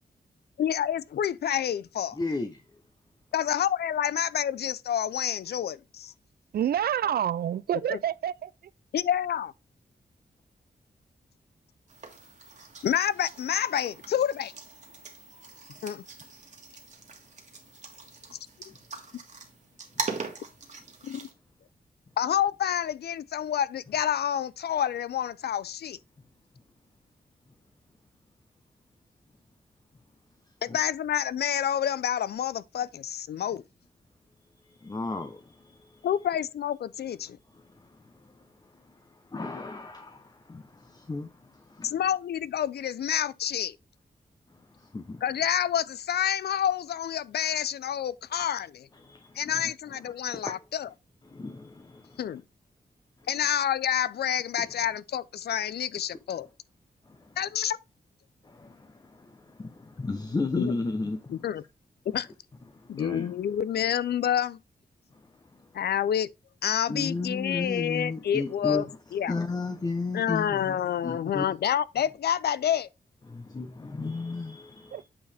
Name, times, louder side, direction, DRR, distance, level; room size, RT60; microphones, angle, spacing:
voice 1, 0.6-2.2 3.3-6.1 7.9-8.0 8.9-9.5 12.8-14.5 15.8-16.0 21.0-21.3 22.2-26.0 30.6-33.6 36.0-37.4 41.8-43.8 45.2-48.9 49.4-50.9 52.2-52.4 53.3-56.5 57.4-57.8 60.6-60.7 61.3-61.6 62.1-62.3 62.9-64.6 65.7-66.3 66.6-68.9 69.1-69.3 70.1-72.9, left 9 dB, 90° left, 0.5 m, -28 dB
voice 2, 2.1-2.6 20.0-20.1 30.7-30.8 34.8-36.1 37.5-41.9 44.5-45.2 49.0-49.6 50.3-50.5 51.3-52.2 54.6-54.7 57.0-57.4 58.4-61.5 62.7-63.4 65.1-65.7 66.9-69.0 69.3-71.5 73.3-75.0, left 3 dB, 25° left, 0.7 m, -35 dB
voice 3, 6.5-8.5 74.9-75.0, right 10 dB, 70° right, 0.4 m, -28 dB
sound 1, 11.9-21.3, right 4 dB, 50° right, 1.8 m, -41 dB
8.6 x 4.8 x 3.3 m
wide cardioid pair, 130°, 16 cm